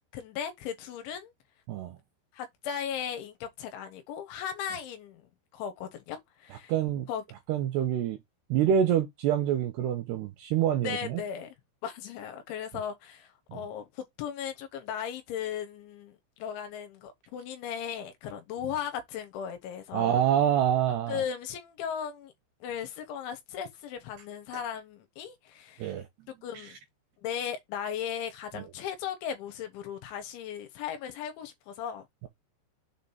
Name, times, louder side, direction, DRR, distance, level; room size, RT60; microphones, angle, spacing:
voice 1, 0.1-1.3 2.3-5.3 5.5-6.7 7.1-7.2 10.8-11.6 11.8-20.2 21.1-22.3 22.6-25.9 26.4-26.8 27.2-32.1, left 8 dB, 75° left, 3.4 m, -37 dB
voice 2, 6.7-7.1 7.5-8.2 8.5-11.2 13.5-13.6 19.9-21.2 25.8-26.0 28.6-28.7, right 10 dB, 75° right, 2.5 m, -26 dB
7.4 x 3.0 x 5.6 m
omnidirectional pair, 5.6 m